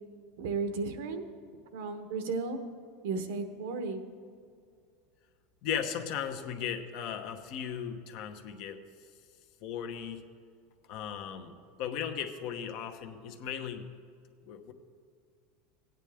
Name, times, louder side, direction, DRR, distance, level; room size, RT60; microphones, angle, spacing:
voice 1, 0.4-1.2 1.7-2.6 3.0-4.0, right 4 dB, 80° right, 8 dB, 1.1 m, -34 dB
voice 2, 5.6-8.8 9.6-10.2 10.9-11.5 11.8-13.9 14.5-14.7, left 8 dB, 60° left, 6 dB, 1.0 m, -36 dB
16.5 x 9.0 x 3.5 m, 2.2 s
supercardioid pair, 125°, 0 cm